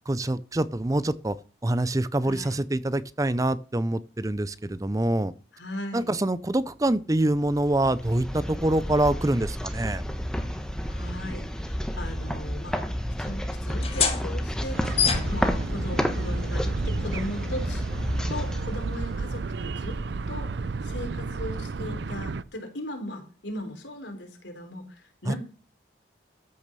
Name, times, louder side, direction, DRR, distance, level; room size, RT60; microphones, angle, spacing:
voice 1, 0.1-1.4 1.6-5.3 5.9-10.0 25.3-25.4, right 1 dB, 20° right, 0.5 m, -25 dB
voice 2, 2.2-2.6 5.5-6.1 10.8-12.8 13.2-14.8 15.3-17.8 18.3-20.0 20.3-20.5 20.8-24.8 25.2-25.4, left 1 dB, 85° left, 3.9 m, -37 dB
sound 1, 7.4-19.5, equal, 5° left, 1.2 m, -31 dB
sound 2, 13.7-20.9, left 6 dB, 30° left, 2.0 m, -33 dB
sound 3, 14.7-22.4, right 4 dB, 75° right, 0.5 m, -33 dB
13.5 x 6.4 x 6.8 m
head